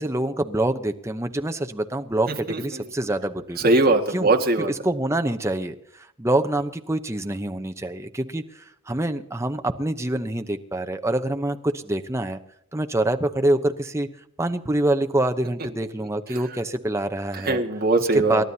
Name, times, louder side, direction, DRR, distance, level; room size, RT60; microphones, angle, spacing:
voice 1, 0.0-3.7 4.1-4.3 4.6-12.4 12.7-14.1 14.4-17.6 18.3-18.4, right 1 dB, 15° right, 6 dB, 0.8 m, -26 dB
voice 2, 2.5-2.9 3.6-4.7 16.3-16.4 17.3-18.4, right 2 dB, 45° right, 2 dB, 1.9 m, -21 dB
29.0 x 12.5 x 2.8 m, 0.74 s
head